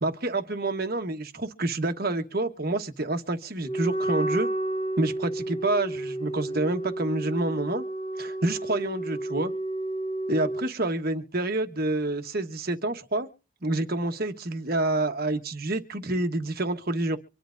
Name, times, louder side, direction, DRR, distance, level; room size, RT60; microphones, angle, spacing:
voice 1, 0.0-4.5 5.0-7.8 8.2-9.5 10.3-13.3 13.6-17.2, right 2 dB, 45° right, 1.1 m, -28 dB
Wind instrument woodwind instrument, 3.6-10.7, right 1 dB, 25° left, 1.2 m, -31 dB
25.0 x 10.5 x 2.5 m
head